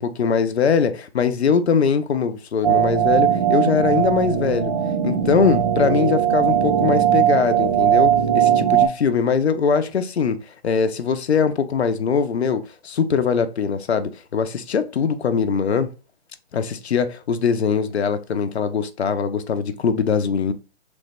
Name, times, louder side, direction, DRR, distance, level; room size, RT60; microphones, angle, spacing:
voice 1, 0.0-4.7 5.0-15.9 16.5-20.5, left 6 dB, 75° left, 0.6 m, -21 dB
sound 1, 2.6-8.9, right 10 dB, 40° right, 0.5 m, -19 dB
3.3 x 2.1 x 3.1 m
figure-of-eight pair, 140°, 33 cm